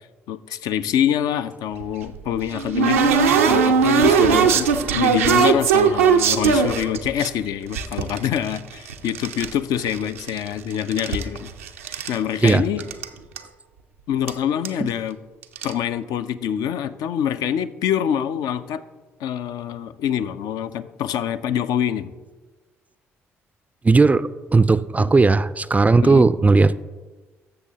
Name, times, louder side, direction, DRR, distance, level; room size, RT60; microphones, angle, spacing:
voice 1, 0.3-11.5 12.1-12.8 14.1-15.2 15.6-18.8 19.2-22.1 25.0-25.1 26.0-26.3, left 9 dB, 65° left, 12 dB, 0.4 m, -25 dB
sound 1, 1.8-7.3 7.7-9.5 9.8-10.5 10.8-12.2 12.5-12.6 12.8-13.1 13.4-13.5 14.3-14.4 14.6-14.9 15.4-15.7, right 6 dB, 90° right, 0.4 m, -19 dB
voice 2, 23.8-26.7, right 3 dB, 20° right, 15 dB, 0.3 m, -16 dB
13.5 x 6.5 x 2.8 m, 1.3 s
hypercardioid pair, 45°, 7 cm